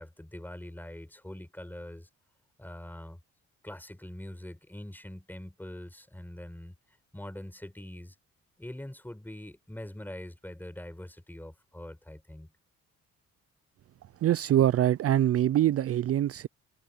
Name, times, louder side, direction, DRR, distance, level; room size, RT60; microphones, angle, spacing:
voice 1, 0.0-2.1 2.6-3.2 3.6-6.7 7.1-8.2 8.6-12.5, left 1 dB, 5° left, 5.9 m, -43 dB
voice 2, 14.2-16.5, right 12 dB, 50° right, 0.5 m, -24 dB
cardioid pair, 90°, 30 cm